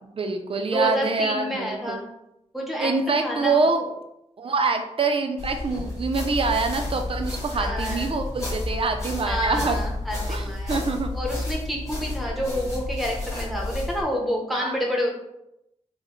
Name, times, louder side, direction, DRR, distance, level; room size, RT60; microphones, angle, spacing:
voice 1, 0.2-2.0 2.8-3.9 4.4-9.8 10.1-11.1 12.2-12.3 14.5-14.7, right 4 dB, 50° right, 5 dB, 0.4 m, -25 dB
voice 2, 0.7-2.1 2.5-3.6 7.5-8.1 9.2-10.8 11.1-15.1, equal, ahead, -1 dB, 0.8 m, -28 dB
sound 1, 5.4-14.0, left 2 dB, 25° left, 1.5 m, -31 dB
4.7 x 2.1 x 3.0 m, 0.83 s
wide cardioid pair, 135°, 12 cm